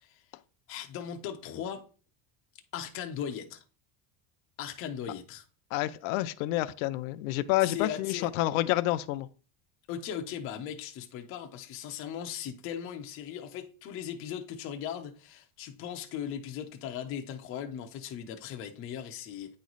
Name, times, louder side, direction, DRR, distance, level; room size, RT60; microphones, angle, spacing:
voice 1, 0.7-1.8 2.7-3.6 4.6-5.4 7.6-8.3 9.9-19.6, left 9 dB, 30° left, 0.6 m, -38 dB
voice 2, 5.7-9.3, left 16 dB, 75° left, 0.5 m, -29 dB
9.3 x 3.1 x 3.9 m
cardioid pair, 180°, 41 cm